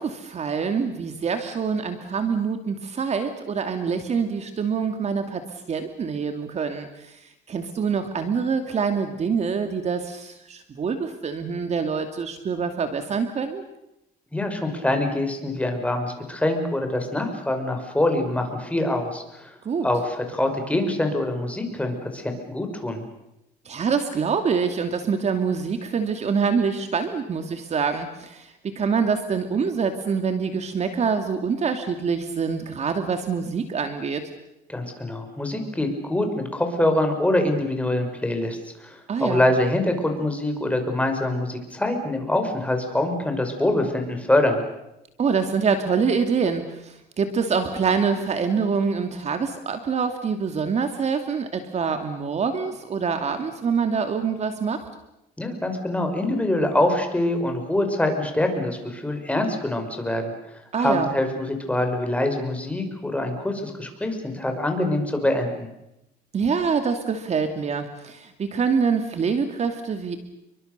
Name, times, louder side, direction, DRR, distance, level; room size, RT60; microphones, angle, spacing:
voice 1, 0.0-7.2 7.5-13.6 19.6-19.9 23.6-34.3 39.1-39.4 45.2-54.9 60.7-61.1 66.3-70.2, right 5 dB, 40° right, 7 dB, 2.6 m, -25 dB
voice 2, 14.3-19.6 19.8-23.0 34.7-44.6 55.4-65.7, left 1 dB, 10° left, 5 dB, 5.8 m, -24 dB
30.0 x 23.5 x 6.8 m, 0.87 s
cardioid pair, 110°, 17 cm